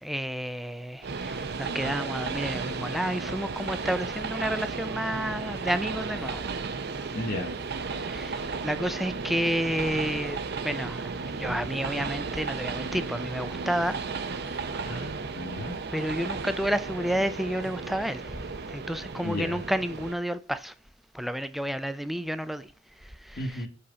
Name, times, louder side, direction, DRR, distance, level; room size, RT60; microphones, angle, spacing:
voice 1, 0.0-6.4 7.9-10.4 10.6-14.0 14.3-14.6 15.9-20.7 21.1-22.7 23.0-23.7, equal, ahead, 0.3 m, -31 dB
Train, 1.0-20.2, right 4 dB, 60° right, 0.6 m, -34 dB
voice 2, 7.1-7.5 14.8-15.7 19.2-19.6 23.4-23.7, left 1 dB, 50° left, 1.0 m, -33 dB
5.5 x 4.1 x 5.0 m
head